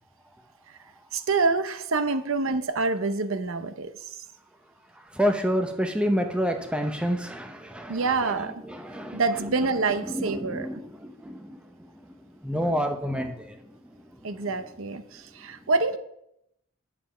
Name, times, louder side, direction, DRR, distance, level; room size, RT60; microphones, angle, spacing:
voice 1, 1.1-4.2 7.9-8.6 9.1-10.7 14.2-16.0, right 3 dB, 70° right, 11 dB, 0.7 m, -27 dB
voice 2, 5.1-9.2 10.1-12.1 12.4-14.3, equal, 5° right, 5 dB, 0.6 m, -29 dB
9.3 x 7.3 x 5.0 m, 0.77 s
head